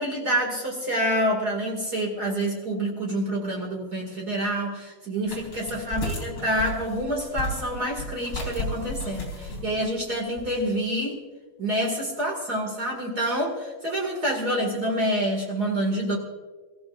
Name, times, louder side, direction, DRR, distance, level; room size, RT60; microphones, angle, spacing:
voice 1, 0.0-11.2 11.6-16.1, right 1 dB, 45° right, -2 dB, 1.3 m, -27 dB
sound 1, 5.3-10.6, left 1 dB, 30° left, 4.0 m, -34 dB
26.5 x 15.5 x 2.5 m, 1.4 s
omnidirectional pair, 5.6 m